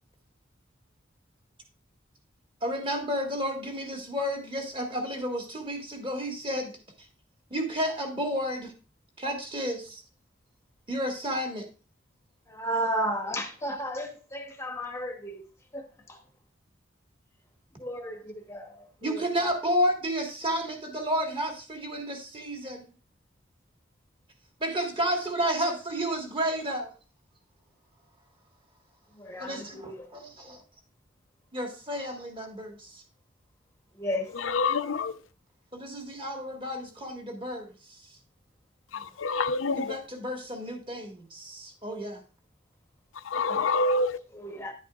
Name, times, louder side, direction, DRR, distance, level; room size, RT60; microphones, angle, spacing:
voice 1, 2.6-6.7 7.5-8.7 9.2-10.0 10.9-11.7 19.0-22.8 24.6-26.9 29.4-30.6 31.5-33.0 35.7-38.0 39.7-42.2, equal, 25° right, 1.6 m, -31 dB
voice 2, 12.5-15.4 15.7-16.2 17.8-19.2 29.2-30.1 34.0-34.3 43.4-43.8 44.3-44.7, equal, 15° left, 0.9 m, -34 dB
voice 3, 34.5-35.1 39.2-39.9 43.3-44.2, left 3 dB, 90° left, 0.6 m, -26 dB
10.5 x 8.3 x 2.4 m
head